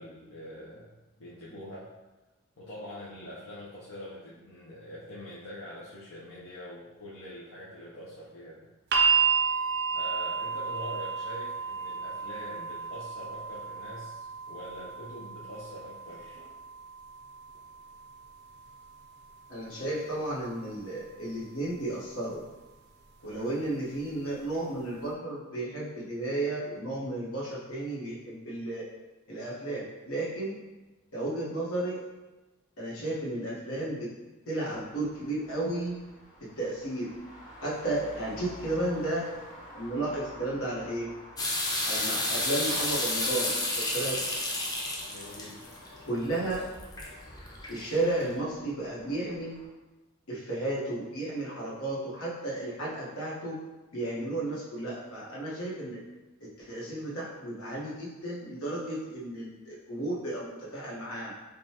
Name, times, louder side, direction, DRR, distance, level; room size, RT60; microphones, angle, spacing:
voice 1, 0.0-1.9 2.6-8.7 9.9-16.5 23.2-23.5 37.8-37.9 44.9-45.7, left 1 dB, 70° left, -8 dB, 0.7 m, -44 dB
sound 1, 8.9-21.0 22.1-22.2, right 6 dB, 50° right, 0.4 m, -32 dB
voice 2, 19.5-22.4 23.2-28.8 29.3-30.6 31.1-32.0 32.8-34.1 34.5-35.9 36.4-37.1 37.6-39.3 39.7-41.1 41.9-44.2 46.0-46.7 47.7-49.6 50.3-53.6 53.9-56.0 56.4-61.3, right 2 dB, 85° left, -6 dB, 1.2 m, -33 dB
Traffic noise roadway noise, 34.7-49.7, equal, 40° left, 1.2 m, -51 dB
sound 2, 41.4-48.2, left 1 dB, 20° left, 0.6 m, -31 dB
5.1 x 2.3 x 2.8 m, 1.2 s
head